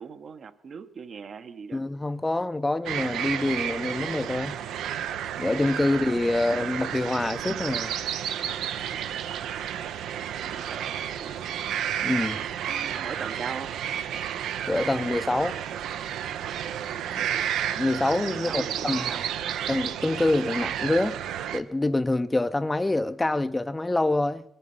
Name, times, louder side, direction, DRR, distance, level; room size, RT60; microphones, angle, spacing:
voice 1, 0.0-1.8 10.5-11.5 12.3-13.7 17.1-17.5 18.3-19.3, right 6 dB, 50° right, 0.9 m, -40 dB
voice 2, 1.7-4.6 5.4-8.0 12.0-12.4 14.7-15.6 17.2-17.3 17.8-19.1 19.7-21.2 21.5-24.4, left 2 dB, 15° left, 0.5 m, -26 dB
sound 1, 2.9-21.6, right 9 dB, 80° right, 0.6 m, -31 dB
21.0 x 9.9 x 5.6 m
cardioid pair, 90°, 0 cm